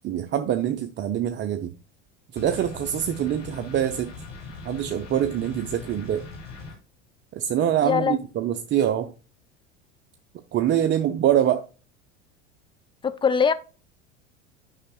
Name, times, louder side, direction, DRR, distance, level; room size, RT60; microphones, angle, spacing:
voice 1, 0.0-1.7 2.3-4.1 4.6-6.2 7.4-9.1 10.5-11.6, right 10 dB, 30° right, 0.6 m, -24 dB
sound 1, 2.4-6.7, left 4 dB, 80° left, 2.7 m, -40 dB
voice 2, 7.8-8.2 13.0-13.5, left 6 dB, 15° left, 0.4 m, -21 dB
9.7 x 5.6 x 2.3 m
hypercardioid pair, 80°, 36 cm